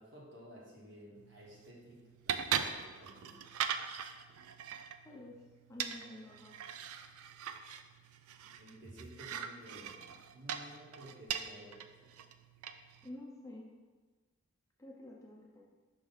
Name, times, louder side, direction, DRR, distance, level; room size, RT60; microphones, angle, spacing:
voice 1, 0.0-3.4 8.6-12.1, right 1 dB, 55° right, -4 dB, 1.4 m, -54 dB
clay tiles, 1.1-13.1, right 8 dB, 90° right, 0.4 m, -41 dB
voice 2, 5.0-5.4 5.7-6.5 13.0-13.7 14.8-15.6, left 1 dB, 15° left, -2 dB, 0.5 m, -49 dB
5.4 x 3.2 x 5.5 m, 1.3 s
head